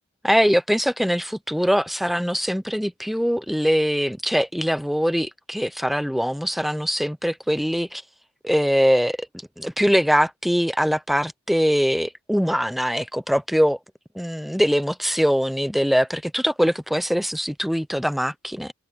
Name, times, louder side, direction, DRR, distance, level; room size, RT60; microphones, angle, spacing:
voice 1, 0.2-8.0 8.4-9.3 9.6-13.8 14.1-18.7, equal, ahead, 0.7 m, -22 dB
head